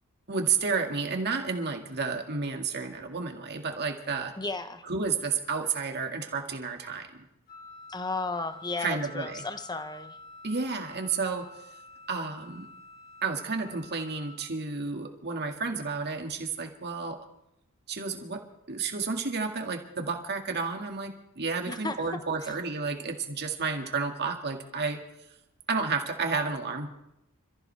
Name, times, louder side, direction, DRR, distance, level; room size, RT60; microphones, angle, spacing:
voice 1, 0.3-4.3 4.8-7.3 8.8-9.4 10.4-11.5 12.1-12.7 13.2-17.2 17.9-18.4 18.7-25.0 25.7-26.9, right 4 dB, 50° right, 3 dB, 2.0 m, -31 dB
voice 2, 4.4-4.8 7.9-10.2 21.7-22.0 22.4-22.5, left 3 dB, 20° left, 9 dB, 1.0 m, -34 dB
Wind instrument woodwind instrument, 7.5-14.4, left 2 dB, 45° left, 3.8 m, -49 dB
27.5 x 14.5 x 3.4 m, 0.86 s
head